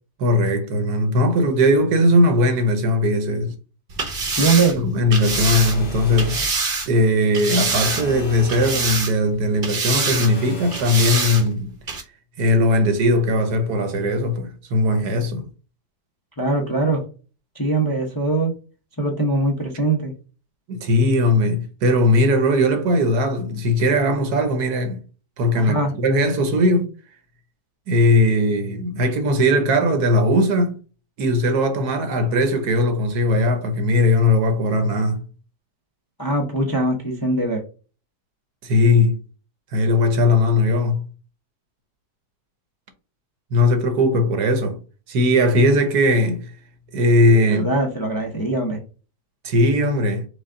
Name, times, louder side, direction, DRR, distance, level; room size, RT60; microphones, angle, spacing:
voice 1, 0.2-3.5 4.8-6.5 6.9-11.7 12.4-15.4 20.7-25.0 25.4-26.9 27.9-30.7 31.2-35.2 38.6-39.2 39.7-41.0 43.5-44.8 45.1-46.5 46.9-47.7 49.4-50.3, left 1 dB, 70° right, 1.4 m, -19 dB
sound 1, 3.9-6.9 7.3-8.2 8.5-9.3 9.6-10.3 10.7-11.4 11.9-12.0, right 4 dB, 40° right, 0.9 m, -25 dB
voice 2, 4.4-4.8 16.4-17.0 17.5-18.5 19.0-20.1 25.5-25.9 36.2-37.6 47.5-48.8, right 2 dB, 20° left, 0.5 m, -21 dB
sound 2, 5.3-6.5 7.6-9.0 10.1-11.5, right 1 dB, 60° left, 1.5 m, -34 dB
5.1 x 2.4 x 3.7 m
omnidirectional pair, 1.8 m